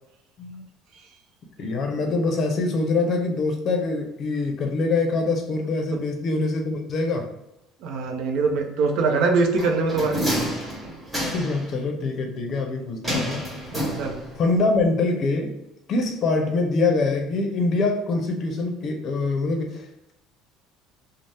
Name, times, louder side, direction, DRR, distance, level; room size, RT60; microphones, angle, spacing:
voice 1, 1.6-7.3 11.3-13.4 14.4-15.5 15.9-20.1, left 3 dB, 45° left, 4 dB, 0.5 m, -24 dB
voice 2, 7.8-10.3 14.0-14.2, right 4 dB, 65° right, 3 dB, 0.5 m, -23 dB
sound 1, 9.6-11.7 13.0-14.5 14.8-14.9, equal, 10° right, 1.2 m, -28 dB
2.7 x 2.0 x 3.3 m, 0.87 s
cardioid pair, 130°, 0 cm